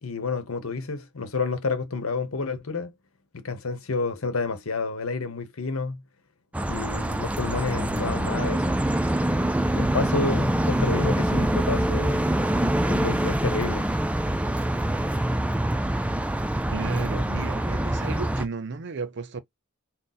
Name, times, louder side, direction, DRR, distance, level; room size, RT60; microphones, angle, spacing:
voice 1, 0.0-2.9 3.3-6.0 6.7-8.8 9.7-12.3 12.9-13.9, left 4 dB, 80° left, 1.0 m, -29 dB
sound 1, 6.5-18.5, right 1 dB, 5° right, 0.4 m, -25 dB
voice 2, 16.7-19.4, right 4 dB, 55° right, 0.6 m, -33 dB
3.9 x 2.1 x 4.1 m
head